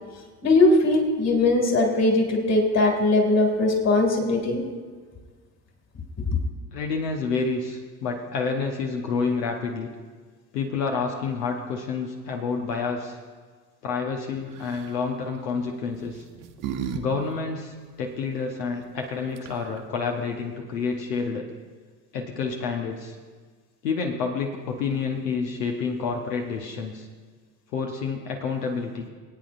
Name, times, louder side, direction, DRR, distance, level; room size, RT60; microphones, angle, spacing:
voice 1, 0.4-4.6, left 2 dB, 30° left, 3 dB, 2.4 m, -20 dB
voice 2, 6.7-9.9 10.5-13.2 13.8-16.2 16.9-21.4 22.1-23.2 23.8-27.1 27.7-29.1, left 5 dB, 75° left, 2 dB, 1.1 m, -29 dB
sound 1, 14.5-15.0 15.9-17.0 17.3-17.4 19.1-19.2 19.3-19.8, right 8 dB, 40° right, 1.1 m, -34 dB
25.5 x 8.9 x 2.6 m, 1.5 s
figure-of-eight pair, 65°, 49 cm